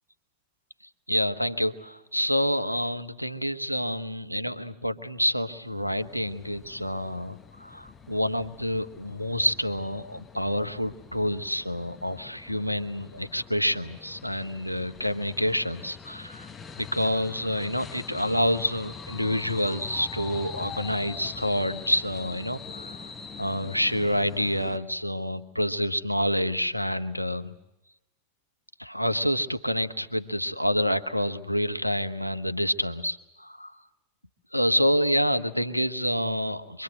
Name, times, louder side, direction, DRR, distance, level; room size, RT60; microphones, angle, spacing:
voice 1, 1.1-16.5 16.8-23.1 23.4-27.5 28.8-33.7 34.5-36.8, equal, 90° left, 10 dB, 1.3 m, -28 dB
sound 1, 5.6-24.8, left 6 dB, 20° left, 1.0 m, -43 dB
26.5 x 23.5 x 7.9 m, 0.95 s
figure-of-eight pair, 90°, 0 cm